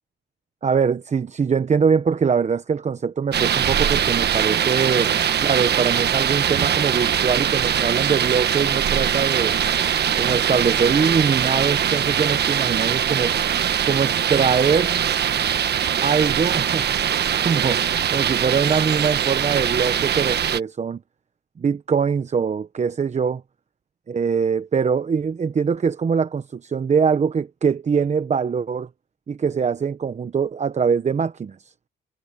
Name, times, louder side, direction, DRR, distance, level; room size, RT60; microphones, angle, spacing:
voice 1, 0.6-5.1 5.4-9.5 10.1-13.3 13.8-15.0 16.0-16.9 17.3-17.8 18.1-21.0 21.6-23.4 24.1-28.9 29.3-31.7, right 6 dB, 35° right, 1.0 m, -22 dB
sound 1, 3.3-20.6, right 9 dB, 55° right, 1.4 m, -22 dB
cardioid pair, 90°, 20 cm